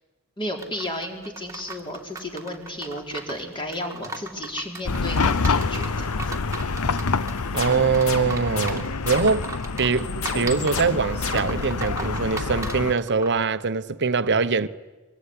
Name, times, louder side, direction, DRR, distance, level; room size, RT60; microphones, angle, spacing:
voice 1, 0.4-6.3, left 1 dB, 20° left, 4.5 m, -33 dB
sound 1, 0.6-13.4, right 3 dB, 15° right, 2.3 m, -38 dB
Chatter / Car passing by / Traffic noise roadway noise, 4.9-12.9, left 4 dB, 85° left, 0.9 m, -27 dB
voice 2, 7.5-9.5 9.8-14.7, right 5 dB, 50° right, 1.0 m, -23 dB
sound 2, 7.6-9.6 10.2-11.8, left 3 dB, 65° left, 2.8 m, -33 dB
24.0 x 23.5 x 9.9 m
head